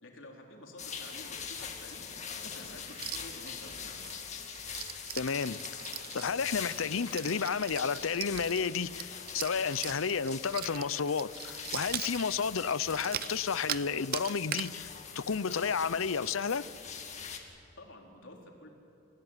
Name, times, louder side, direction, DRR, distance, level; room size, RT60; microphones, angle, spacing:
voice 1, 0.0-2.1 2.4-4.1 17.8-18.7, left 1 dB, 70° left, 0 dB, 4.1 m, -50 dB
sound 1, 0.8-17.4, left 6 dB, 35° left, 2.2 m, -43 dB
sound 2, 2.9-3.5 3.8-13.9 14.1-14.7 15.1-15.2 15.5-15.9 16.1-16.2 16.7-16.9, right 11 dB, 45° right, 0.6 m, -40 dB
voice 2, 5.1-5.6 6.1-16.7, left 6 dB, 85° left, 17 dB, 0.7 m, -32 dB
29.5 x 17.0 x 9.9 m, 2.7 s
head